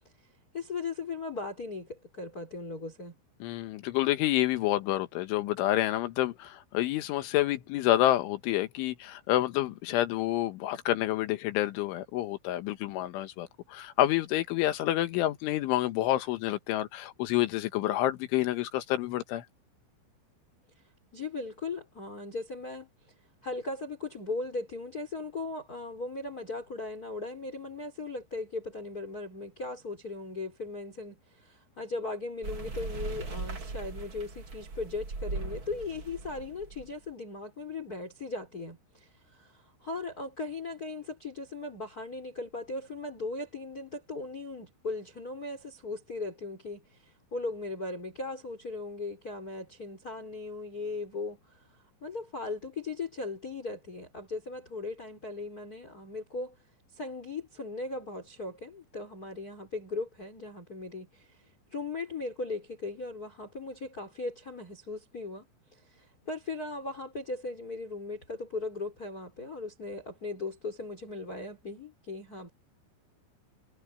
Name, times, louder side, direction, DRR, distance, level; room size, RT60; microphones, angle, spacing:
voice 1, 0.5-3.1 21.1-22.9 23.4-56.6 56.9-61.4 61.7-65.4 65.7-72.5, left 3 dB, 20° left, 4.5 m, -38 dB
voice 2, 3.4-19.4, left 14 dB, 85° left, 3.7 m, -28 dB
sound 1, 32.4-36.9, right 3 dB, 30° right, 2.9 m, -39 dB
omnidirectional pair, 5.5 m